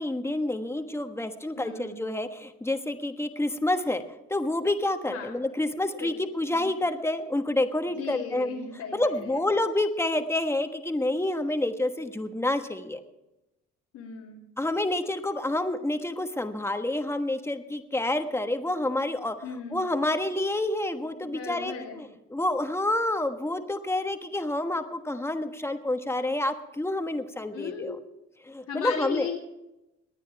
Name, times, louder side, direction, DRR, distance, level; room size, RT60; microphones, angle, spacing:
voice 1, 0.0-4.0 4.3-8.5 8.9-13.0 14.6-19.3 19.7-28.0 28.4-29.3, left 1 dB, 10° left, 7 dB, 1.2 m, -28 dB
voice 2, 1.5-2.0 5.1-5.3 6.0-6.7 8.0-9.4 13.9-14.4 19.4-19.8 21.2-22.0 27.5-28.0 28.7-29.4, left 6 dB, 85° left, -5 dB, 2.5 m, -36 dB
19.5 x 9.7 x 4.7 m, 0.95 s
cardioid pair, 90°, 30 cm